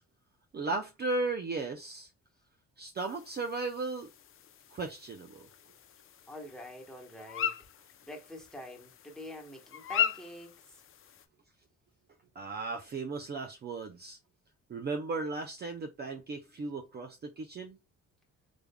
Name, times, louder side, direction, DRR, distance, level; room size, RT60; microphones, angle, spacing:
voice 1, 0.5-2.1 2.8-4.1 4.7-5.5 12.4-14.2 14.7-17.8, right 3 dB, 35° right, 0.5 m, -36 dB
sound 1, 3.0-11.3, left 9 dB, 45° left, 0.4 m, -39 dB
voice 2, 6.3-7.5 8.0-10.8, left 1 dB, ahead, 1.1 m, -46 dB
3.5 x 3.4 x 2.2 m
cardioid pair, 90°, 30 cm